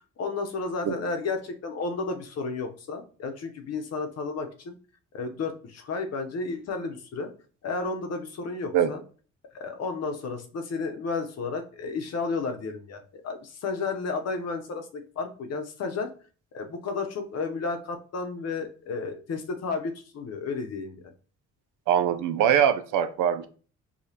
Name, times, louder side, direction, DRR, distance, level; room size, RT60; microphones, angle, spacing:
voice 1, 0.2-4.7 5.1-7.3 7.6-9.0 9.5-16.1 16.5-21.1, left 4 dB, 55° left, 6 dB, 0.8 m, -32 dB
voice 2, 21.9-23.5, right 9 dB, 85° right, 10 dB, 0.5 m, -22 dB
4.9 x 2.3 x 2.8 m, 0.39 s
cardioid pair, 90°, 30 cm